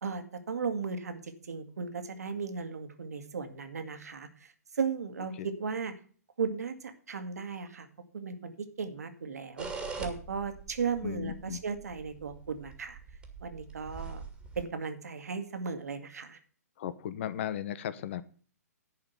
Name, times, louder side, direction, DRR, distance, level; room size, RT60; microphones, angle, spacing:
voice 1, 0.0-6.0 6.4-7.9 8.1-9.7 10.0-13.0 13.4-14.2 14.6-16.4, right 5 dB, 70° right, 8 dB, 1.9 m, -36 dB
sound 1, 9.6-14.6, right 5 dB, 10° right, 2.1 m, -43 dB
voice 2, 11.0-11.6 16.8-18.2, left 10 dB, 45° left, 14 dB, 0.9 m, -36 dB
11.0 x 5.2 x 8.0 m, 0.43 s
figure-of-eight pair, 125°, 9 cm